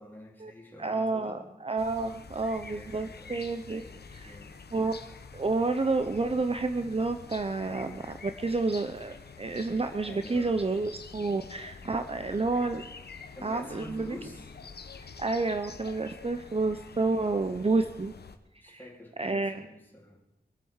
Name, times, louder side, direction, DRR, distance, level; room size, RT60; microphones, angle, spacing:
voice 1, 0.0-1.5 2.6-4.6 10.0-10.7 13.3-14.5 17.2-17.7 18.6-20.2, left 1 dB, 10° left, -2 dB, 4.1 m, -48 dB
voice 2, 0.8-3.8 4.1-4.3 4.7-4.9 5.3-12.9 13.4-14.2 15.2-18.1 18.6-18.8 19.2-19.6, right 3 dB, 35° right, 8 dB, 0.8 m, -30 dB
sound 1, 1.8-18.4, left 5 dB, 85° left, 1.1 m, -47 dB
23.0 x 8.3 x 7.3 m, 0.93 s
wide cardioid pair, 80°, 16 cm